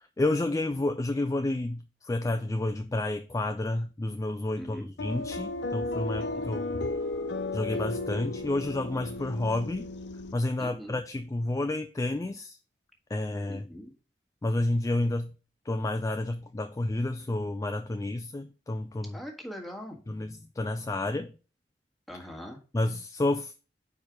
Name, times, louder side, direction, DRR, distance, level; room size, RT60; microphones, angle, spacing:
voice 1, 0.2-6.9 7.5-9.9 10.3-12.6 13.1-13.7 14.4-15.3 15.6-19.2 20.1-21.3 22.7-23.7, left 2 dB, 20° left, 0.3 m, -30 dB
voice 2, 4.6-4.9 6.2-6.6 10.6-11.0 13.5-13.9 19.1-20.0 22.1-22.6, equal, ahead, 1.4 m, -42 dB
sound 1, 5.0-10.3, left 2 dB, 85° left, 0.6 m, -34 dB
4.8 x 4.5 x 5.9 m
head